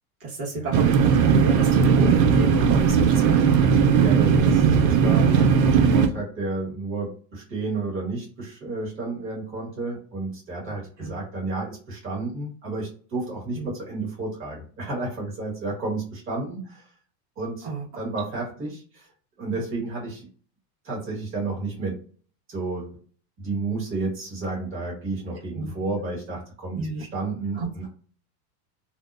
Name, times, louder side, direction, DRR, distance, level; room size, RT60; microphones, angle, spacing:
voice 1, 0.2-3.6 11.0-11.1 13.5-13.7 17.6-17.9 25.5-25.7 26.7-27.0 27.5-27.7, right 2 dB, 60° right, -4 dB, 1.3 m, -31 dB
sound 1, 0.7-6.1, right 6 dB, 90° right, 0.6 m, -18 dB
voice 2, 3.8-16.8 17.4-17.7 18.0-19.1 19.4-20.3 20.8-22.0 22.5-22.9 23.4-27.9, right 3 dB, 25° right, -3 dB, 1.3 m, -31 dB
2.7 x 2.1 x 2.4 m, 0.41 s
supercardioid pair, 120°, 49 cm